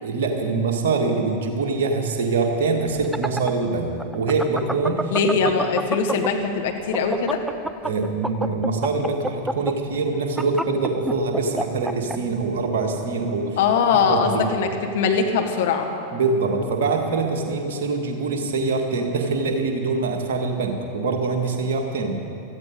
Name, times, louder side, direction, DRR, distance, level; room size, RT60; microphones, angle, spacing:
voice 1, 0.0-5.1 5.4-5.5 7.8-13.6 14.1-14.5 16.1-22.2, right 3 dB, 55° right, 2 dB, 1.9 m, -24 dB
sound 1, 2.9-6.5 6.8-12.2, right 1 dB, 5° right, 0.5 m, -27 dB
voice 2, 5.1-7.4 13.6-15.9, left 5 dB, 55° left, 4 dB, 1.4 m, -21 dB
16.0 x 13.5 x 5.3 m, 2.8 s
figure-of-eight pair, 90°, 0 cm